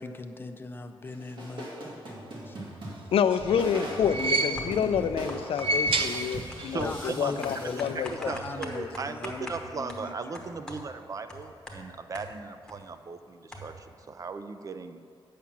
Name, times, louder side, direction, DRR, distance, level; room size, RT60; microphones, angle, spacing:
voice 1, 0.0-1.9 2.4-2.6 6.8-10.5, left 3 dB, 25° left, 7 dB, 0.5 m, -39 dB
sound 1, 1.0-8.5, equal, 60° right, 2.3 m, -40 dB
sound 2, 3.0-4.9 5.4-6.8 7.1-7.2 8.3-8.4, right 2 dB, 75° right, 0.7 m, -30 dB
voice 2, 3.1-8.3, left 7 dB, 90° left, 10 dB, 0.4 m, -28 dB
sound 3, 3.8-4.1 4.6-4.9 5.3-12.9 13.1-13.2 13.5-13.9, equal, 5° left, 1.0 m, -44 dB
voice 3, 6.5-7.4 7.8-15.0, right 4 dB, 40° right, 10 dB, 0.4 m, -38 dB
8.5 x 5.8 x 7.3 m, 2.4 s
wide cardioid pair, 175°, 9 cm